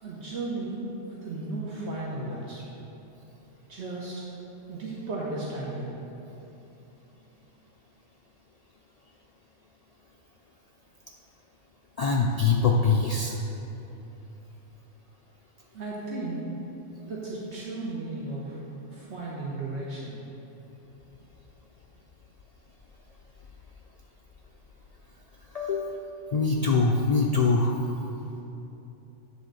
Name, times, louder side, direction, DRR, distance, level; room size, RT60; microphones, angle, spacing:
voice 1, 0.0-2.7 3.7-4.2 4.7-5.9 15.7-16.6 17.1-18.6 18.9-20.2 28.3-28.4, right 2 dB, 65° right, -5 dB, 1.2 m, -35 dB
voice 2, 12.0-13.3 25.5-26.0 26.3-27.8, left 4 dB, 75° left, -1 dB, 0.3 m, -23 dB
8.4 x 3.8 x 6.4 m, 2.9 s
omnidirectional pair, 1.2 m